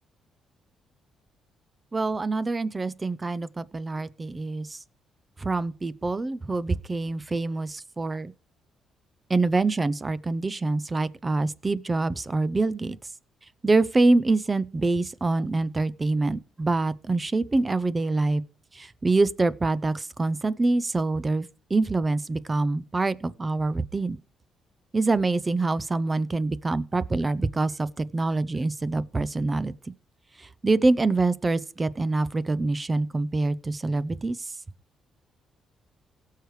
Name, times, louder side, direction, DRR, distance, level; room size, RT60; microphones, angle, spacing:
voice 1, 1.9-4.8 5.4-8.3 9.3-13.0 13.6-18.4 18.7-24.2 24.9-29.9 30.4-34.5, right 3 dB, 25° right, 0.6 m, -25 dB
17.5 x 6.6 x 3.2 m
cardioid pair, 90°, 0 cm